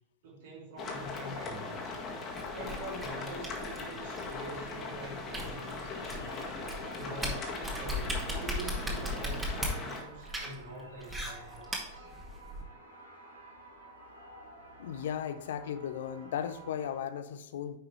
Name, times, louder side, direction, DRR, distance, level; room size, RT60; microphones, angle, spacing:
voice 1, 0.2-2.0 2.5-6.6 6.9-12.1, right 1 dB, 55° right, 3.0 m, -45 dB
sound 1, 0.8-10.0, left 3 dB, 30° left, 1.8 m, -39 dB
sound 2, 2.4-12.6, equal, 15° right, 2.0 m, -38 dB
sound 3, 4.1-17.0, right 1 dB, 90° right, 2.5 m, -52 dB
voice 2, 14.8-17.8, left 9 dB, 60° left, 0.7 m, -36 dB
9.8 x 5.8 x 3.3 m
figure-of-eight pair, 90°, 0 cm